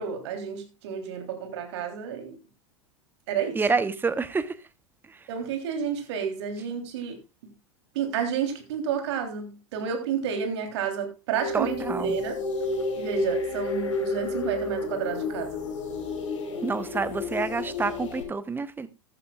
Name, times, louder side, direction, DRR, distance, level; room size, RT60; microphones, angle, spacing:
voice 1, 0.0-2.4 3.3-3.6 5.3-7.2 7.4-7.5 8.0-12.4 12.9-15.6, right 7 dB, 55° right, 3.4 m, -30 dB
voice 2, 3.5-4.6 5.1-5.2 11.5-12.2 16.6-18.9, right 4 dB, 10° right, 1.0 m, -28 dB
sound 1, 11.4-18.2, left 3 dB, 65° left, 5.1 m, -31 dB
15.0 x 12.5 x 2.4 m
figure-of-eight pair, 90°, 17 cm